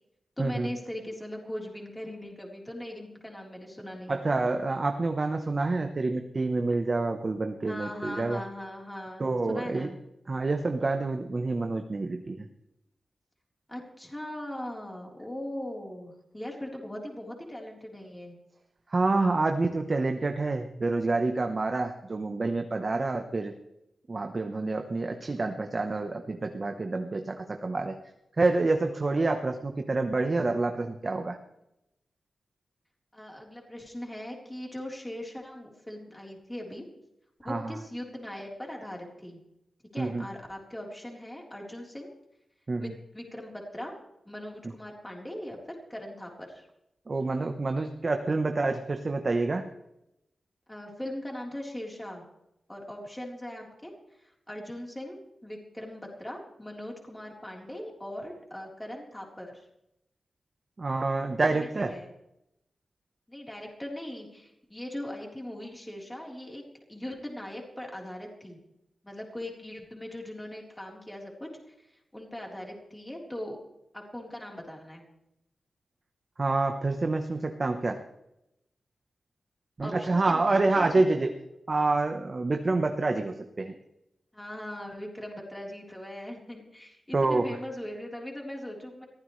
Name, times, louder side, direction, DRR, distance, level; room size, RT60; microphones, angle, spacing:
voice 1, 0.4-4.2 7.7-10.0 13.7-18.4 33.1-36.8 37.4-39.4 39.9-42.1 42.8-43.9 44.3-46.7 50.7-52.2 52.7-59.7 61.4-62.1 63.3-66.6 66.9-68.6 69.0-73.6 73.9-75.1 79.8-81.1 84.3-89.1, left 1 dB, 10° left, -1 dB, 3.9 m, -40 dB
voice 2, 4.1-8.4 9.2-9.9 10.3-12.4 18.9-23.5 24.1-28.0 28.4-31.4 37.5-37.7 40.0-40.2 42.7-42.9 47.1-49.6 60.8-61.9 76.4-78.0 79.8-81.3 81.7-83.7 87.1-87.5, right 3 dB, 35° right, 6 dB, 1.0 m, -27 dB
22.0 x 15.5 x 3.3 m, 0.85 s
wide cardioid pair, 135°, 0 cm